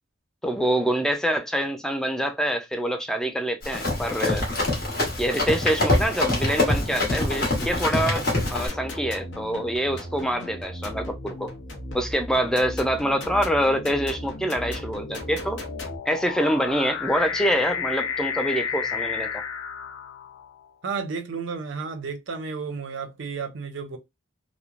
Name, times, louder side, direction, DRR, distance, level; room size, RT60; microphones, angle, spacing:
voice 1, 0.4-4.5 5.2-8.3 8.5-11.5 11.9-15.6 16.1-19.3, equal, 5° left, 0.3 m, -25 dB
Run, 3.6-8.7, left 2 dB, 50° left, 1.1 m, -25 dB
sound 1, 6.6-16.0, left 1 dB, 65° left, 0.8 m, -36 dB
sound 2, 11.2-11.6 12.5-20.7, left 7 dB, 85° left, 0.4 m, -33 dB
voice 2, 20.8-24.0, right 5 dB, 75° right, 0.5 m, -32 dB
3.0 x 2.0 x 2.4 m
head